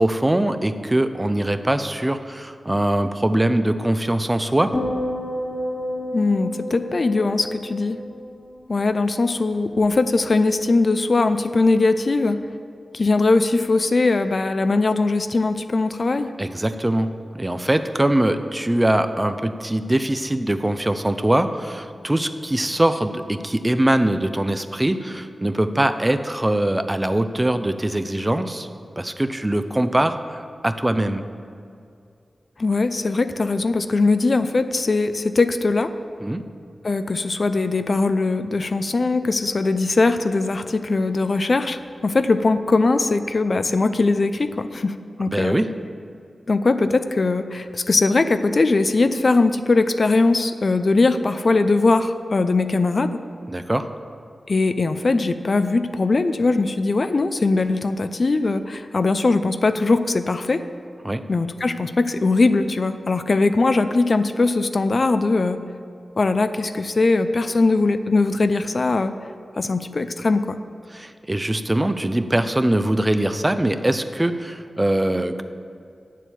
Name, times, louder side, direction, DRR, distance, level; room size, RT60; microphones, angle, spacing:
voice 1, 0.0-4.7 16.4-28.7 29.0-31.3 36.2-36.4 45.3-45.7 53.5-53.9 61.0-61.2 70.9-75.4, right 1 dB, 20° right, 10 dB, 0.6 m, -22 dB
sound 1, 4.7-9.1 9.4-9.8, left 1 dB, 35° left, 0.8 m, -30 dB
voice 2, 6.1-8.0 8.7-12.4 12.9-16.3 32.6-35.9 36.8-45.6 46.5-53.2 54.5-60.6 61.3-65.6 66.2-69.1 69.6-70.6, left 3 dB, 55° left, 10 dB, 0.5 m, -20 dB
8.4 x 7.4 x 6.9 m, 2.4 s
wide cardioid pair, 65°, 0 cm